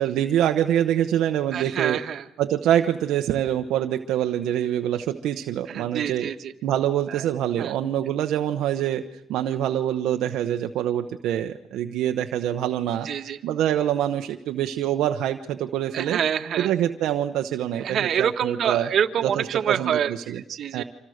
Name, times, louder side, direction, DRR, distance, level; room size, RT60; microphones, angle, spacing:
voice 1, 0.0-2.0 2.4-6.3 6.6-13.1 13.4-16.2 16.6-18.9 19.2-20.4 20.7-20.8, right 11 dB, 85° right, 5 dB, 1.0 m, -25 dB
voice 2, 1.5-2.2 5.7-6.5 7.1-7.2 7.6-7.8 13.0-13.4 15.9-16.7 17.8-20.8, right 8 dB, 65° right, 7 dB, 1.7 m, -26 dB
29.5 x 26.0 x 6.6 m, 0.85 s
cardioid pair, 90°, 0 cm